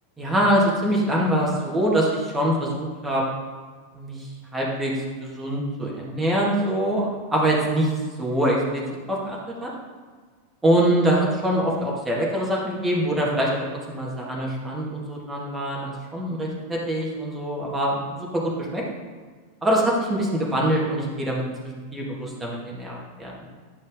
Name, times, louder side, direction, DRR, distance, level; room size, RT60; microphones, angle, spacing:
voice 1, 0.2-3.2 3.9-4.9 5.2-7.9 8.2-8.8 9.1-9.7 10.6-18.8 19.6-21.4 21.9-23.3, right 1 dB, 10° right, -4 dB, 2.0 m, -24 dB
10.0 x 5.3 x 3.8 m, 1.5 s
figure-of-eight pair, 90°, 0 cm